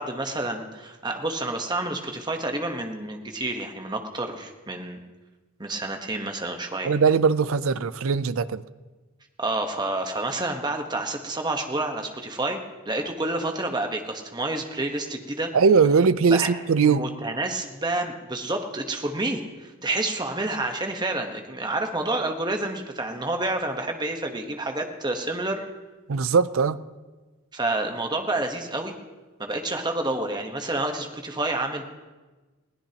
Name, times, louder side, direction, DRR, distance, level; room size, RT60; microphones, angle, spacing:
voice 1, 0.0-5.0 5.6-6.9 9.4-12.6 12.9-15.5 16.3-16.5 16.8-25.6 27.5-28.9 29.4-31.9, right 2 dB, 20° right, 4 dB, 1.1 m, -29 dB
voice 2, 6.8-8.6 15.5-17.1 26.1-26.8, right 5 dB, 65° right, 16 dB, 0.5 m, -20 dB
21.0 x 16.5 x 2.9 m, 1.2 s
head